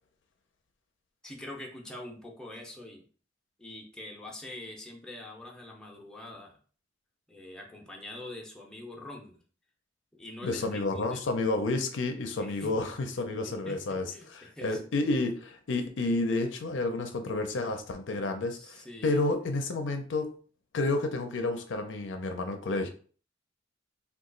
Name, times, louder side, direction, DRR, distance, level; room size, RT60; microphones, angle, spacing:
voice 1, 1.2-3.0 3.6-6.6 7.3-9.4 10.1-11.2 12.4-12.7 13.4-13.8 14.1-14.8 18.5-19.2, left 1 dB, 5° left, -1 dB, 0.6 m, -44 dB
voice 2, 10.4-20.3 20.7-22.9, left 2 dB, 70° left, 6 dB, 0.5 m, -30 dB
2.9 x 2.3 x 3.8 m, 0.42 s
head